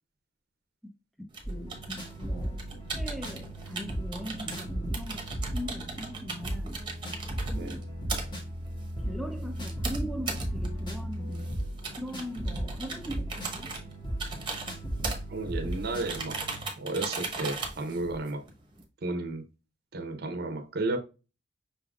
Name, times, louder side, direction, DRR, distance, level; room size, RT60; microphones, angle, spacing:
voice 1, 1.2-6.8 7.5-7.8 9.0-11.7 12.0-13.7, equal, ahead, 0.5 m, -40 dB
sound 1, 1.3-18.8, right 4 dB, 25° right, 0.9 m, -39 dB
sound 2, 1.4-16.6, right 1 dB, 25° left, 1.3 m, -36 dB
voice 2, 15.3-16.4 16.8-18.4 19.0-19.4 19.9-21.0, right 2 dB, 55° right, 0.7 m, -33 dB
5.5 x 3.6 x 2.3 m
head